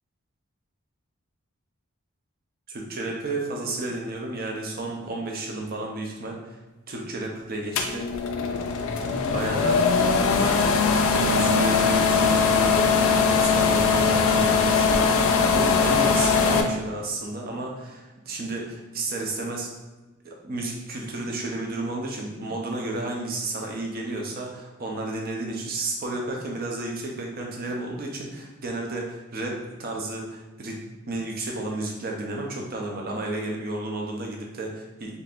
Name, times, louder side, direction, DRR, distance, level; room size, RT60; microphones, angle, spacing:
voice 1, 2.7-6.6 6.9-8.1 9.3-9.8 10.3-19.7 20.2-30.8 31.1-35.2, right 2 dB, 40° right, 0 dB, 0.5 m, -32 dB
sound 1, 7.8-16.6, left 5 dB, 70° left, 0.3 m, -21 dB
3.7 x 2.8 x 2.4 m, 1.1 s
head